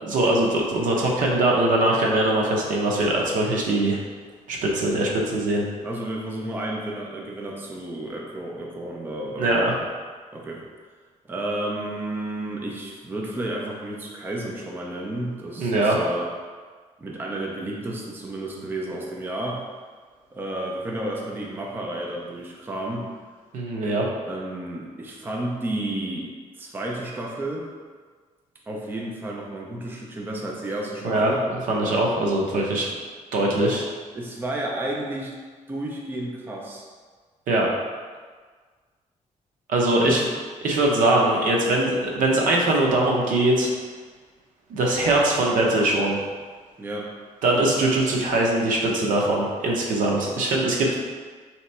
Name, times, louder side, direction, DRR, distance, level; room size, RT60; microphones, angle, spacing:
voice 1, 0.0-4.0 4.5-5.6 9.4-9.7 15.6-16.0 23.5-24.0 31.0-31.3 31.7-32.9 33.3-33.9 37.5-37.7 39.7-40.2 40.6-43.7 44.7-46.2 47.4-51.0, right 1 dB, 80° right, -1 dB, 0.8 m, -21 dB
voice 2, 5.8-9.6 10.3-10.6 11.3-16.3 17.0-19.6 20.3-23.1 24.2-26.3 26.6-27.7 28.7-31.4 34.2-35.3 35.7-36.8 40.0-40.3 46.8-47.1, right 1 dB, 15° right, -2 dB, 0.5 m, -31 dB
3.3 x 2.9 x 4.2 m, 1.5 s
cardioid pair, 165°, 14 cm